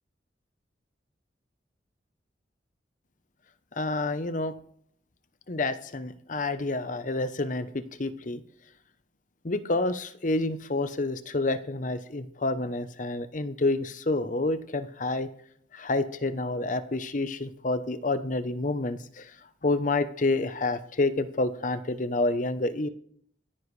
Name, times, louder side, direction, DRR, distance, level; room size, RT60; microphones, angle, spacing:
voice 1, 3.8-4.5 5.5-8.4 9.4-15.3 15.7-19.3 19.6-22.9, left 2 dB, 45° left, 12 dB, 0.8 m, -28 dB
26.0 x 9.9 x 3.3 m, 0.65 s
head